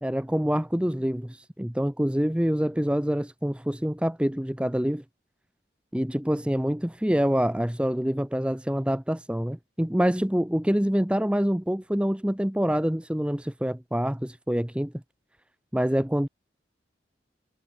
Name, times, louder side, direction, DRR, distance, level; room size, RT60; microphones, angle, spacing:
voice 1, 0.0-5.0 5.9-14.9 15.7-16.3, equal, 5° right, 0.8 m, -26 dB
head